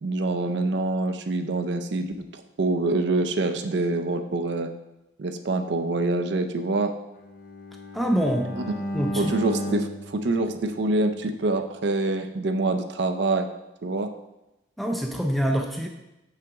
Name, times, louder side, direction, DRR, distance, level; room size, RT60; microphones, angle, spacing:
voice 1, 0.0-4.7 5.2-6.9 9.2-13.5 13.8-14.1, right 2 dB, 60° right, 7 dB, 0.5 m, -25 dB
Bowed string instrument, 7.2-11.4, equal, 45° left, 0.6 m, -34 dB
voice 2, 7.9-8.6 8.9-9.3 14.8-15.9, equal, ahead, 2 dB, 0.4 m, -25 dB
6.3 x 5.7 x 3.5 m, 0.96 s
head